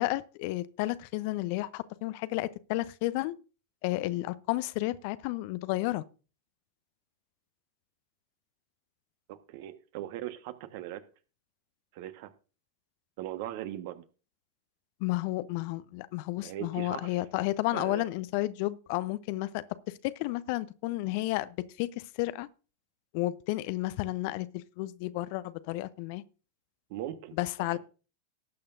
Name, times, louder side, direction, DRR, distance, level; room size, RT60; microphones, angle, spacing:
voice 1, 0.0-3.3 3.8-6.0 15.0-19.6 20.0-22.5 23.1-24.5 24.8-26.2 27.4-27.8, left 18 dB, 45° left, 0.8 m, -32 dB
voice 2, 9.3-11.0 11.9-12.3 13.2-14.0 16.4-17.2 17.7-18.1 26.9-27.4, right 13 dB, 50° right, 1.4 m, -39 dB
19.0 x 8.6 x 2.6 m
figure-of-eight pair, 90°, 0 cm